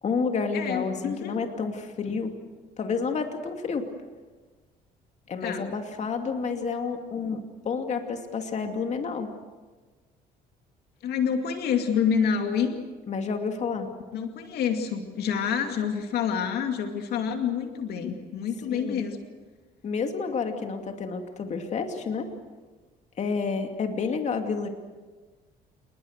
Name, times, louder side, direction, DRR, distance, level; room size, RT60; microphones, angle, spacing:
voice 1, 0.0-2.3 2.8-3.9 5.3-9.3 13.1-13.9 18.7-19.0 19.8-22.3 23.2-24.7, left 5 dB, 45° left, 5 dB, 2.5 m, -30 dB
voice 2, 0.5-1.3 5.4-5.7 11.0-12.7 14.1-19.2, left 7 dB, 70° left, 5 dB, 2.4 m, -27 dB
28.0 x 20.5 x 6.7 m, 1.3 s
cardioid pair, 110°, 17 cm